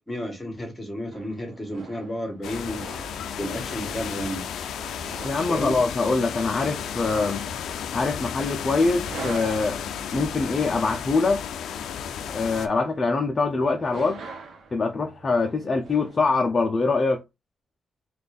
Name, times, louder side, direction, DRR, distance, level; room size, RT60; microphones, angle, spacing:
voice 1, 0.1-2.8 3.4-4.4 5.5-5.8, equal, 10° left, 1.4 m, -32 dB
sound 1, 1.1-16.5, right 4 dB, 60° right, 0.9 m, -45 dB
sound 2, 2.4-12.7, left 8 dB, 85° left, 0.4 m, -33 dB
voice 2, 5.2-7.5 7.9-9.8 10.1-11.4 12.3-14.2 14.7-17.2, left 3 dB, 30° left, 0.5 m, -24 dB
4.0 x 2.4 x 3.4 m
cardioid pair, 140°, 0 cm